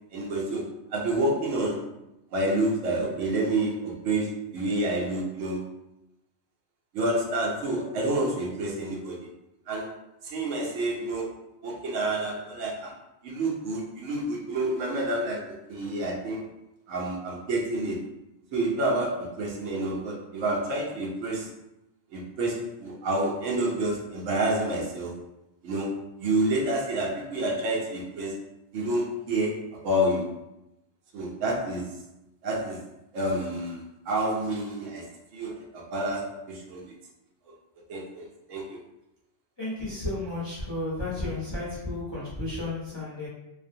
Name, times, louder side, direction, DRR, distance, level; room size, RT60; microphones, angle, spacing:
voice 1, 0.1-1.8 2.3-5.6 6.9-9.3 9.7-9.9 10.2-11.3 11.6-13.0 13.2-16.4 16.9-18.0 18.5-21.5 22.1-25.1 25.6-28.4 28.7-30.4 31.1-31.9 32.4-32.8 33.1-36.9 37.9-38.8, right 1 dB, 85° right, -2 dB, 1.0 m, -29 dB
voice 2, 39.6-43.3, left 2 dB, 30° left, -9 dB, 0.5 m, -33 dB
2.4 x 2.1 x 2.6 m, 0.91 s
omnidirectional pair, 1.3 m